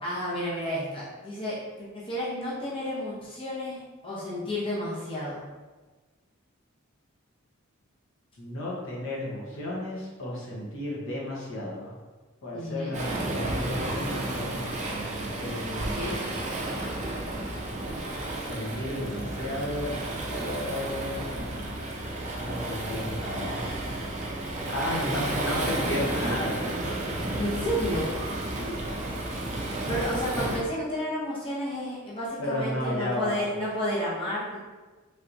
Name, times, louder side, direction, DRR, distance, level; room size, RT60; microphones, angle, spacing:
voice 1, 0.0-5.4 12.5-12.9 15.9-16.2 24.9-25.3 27.4-28.1 29.6-34.6, equal, 25° left, -7 dB, 0.7 m, -31 dB
voice 2, 8.4-11.9 12.4-16.0 18.4-19.9 20.3-21.3 22.4-23.7 24.7-26.6 28.5-29.1 32.4-33.4, left 1 dB, 65° left, -5 dB, 0.8 m, -33 dB
Waves surf, 12.9-30.6, right 1 dB, 35° right, 0.4 m, -32 dB
3.3 x 2.8 x 2.5 m, 1.3 s
head